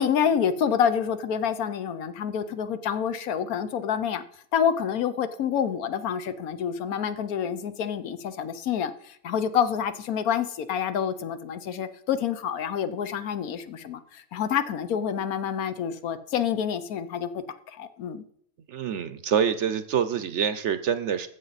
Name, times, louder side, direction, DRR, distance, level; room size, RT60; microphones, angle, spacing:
voice 1, 0.0-4.2 4.5-18.2, left 8 dB, 80° left, 12 dB, 1.2 m, -27 dB
voice 2, 18.7-21.3, right 8 dB, 65° right, 12 dB, 0.9 m, -26 dB
14.5 x 7.6 x 4.0 m, 0.67 s
omnidirectional pair, 1.5 m